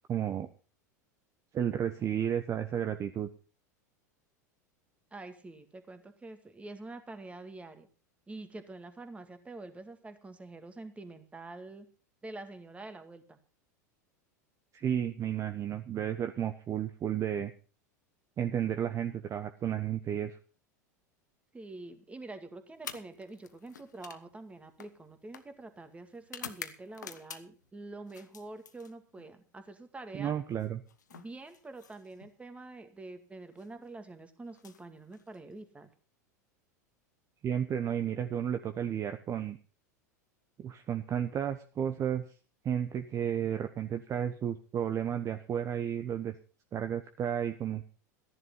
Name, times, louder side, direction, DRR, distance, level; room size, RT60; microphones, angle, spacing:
voice 1, 0.1-0.5 1.5-3.3 14.7-17.5 18.4-20.4 30.1-30.8 37.4-39.6 40.6-42.2 42.6-46.3 46.7-47.8, right 9 dB, 30° right, 8 dB, 1.1 m, -32 dB
voice 2, 5.1-7.9 8.3-11.9 12.2-13.4 21.5-30.3 31.1-35.9, right 2 dB, 15° right, 8 dB, 2.2 m, -46 dB
sound 1, 22.7-27.7 28.1-29.3 30.5-32.3 33.4-33.7 34.5-35.6, left 7 dB, 80° left, 1.2 m, -49 dB
14.5 x 11.0 x 5.5 m, 0.38 s
hypercardioid pair, 85°, 9 cm